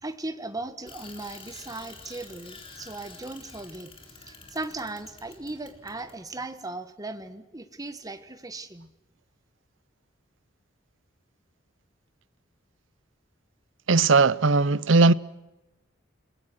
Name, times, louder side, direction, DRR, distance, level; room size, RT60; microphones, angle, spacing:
voice 1, 0.0-3.9 4.3-8.9, right 2 dB, 20° right, 1.5 m, -37 dB
Bicycle, 0.9-6.4, left 3 dB, 30° left, 3.8 m, -48 dB
voice 2, 13.9-15.1, right 3 dB, 75° right, 0.7 m, -18 dB
29.5 x 21.5 x 6.2 m
head